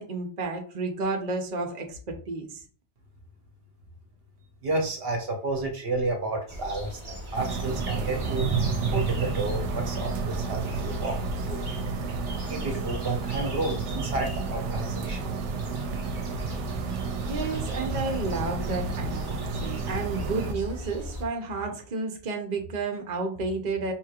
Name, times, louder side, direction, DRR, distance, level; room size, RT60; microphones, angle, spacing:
voice 1, 0.0-2.6 16.7-16.8 17.3-23.9, right 3 dB, 45° right, 3 dB, 0.8 m, -31 dB
voice 2, 4.6-8.4 8.9-11.2 11.4-11.6 12.5-15.2, right 2 dB, 60° right, 3 dB, 1.0 m, -31 dB
sound 1, 6.5-21.3, equal, 25° right, 1.1 m, -38 dB
sound 2, 7.3-20.5, right 4 dB, 80° right, 0.9 m, -31 dB
5.4 x 3.0 x 2.4 m, 0.41 s
omnidirectional pair, 1.2 m